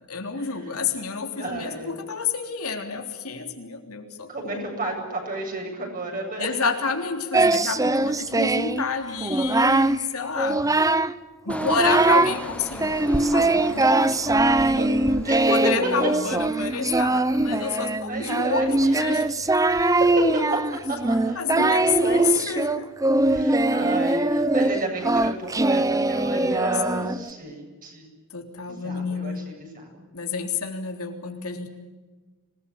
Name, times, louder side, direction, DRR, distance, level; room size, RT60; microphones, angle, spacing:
voice 1, 0.1-4.7 6.4-10.7 11.4-15.0 15.5-19.2 19.5-19.6 20.2-20.4 21.4-22.9 26.4-27.1 28.3-29.5 30.1-31.7, left 5 dB, 75° left, 4 dB, 3.5 m, -29 dB
voice 2, 1.4-1.9 4.3-6.6 12.2-12.4 14.5-15.9 17.5-19.2 19.6-20.2 20.9-22.3 23.3-28.0 28.7-30.0, right 2 dB, 40° right, 2 dB, 7.9 m, -32 dB
Singing, 7.3-8.8 9.2-10.0 10.4-11.2 11.5-12.4 12.8-27.3, right 2 dB, 15° right, 0.7 m, -22 dB
Engine, 11.5-16.2 16.5-16.9, left 1 dB, 5° left, 1.3 m, -39 dB
26.5 x 19.5 x 8.6 m, 1.3 s
head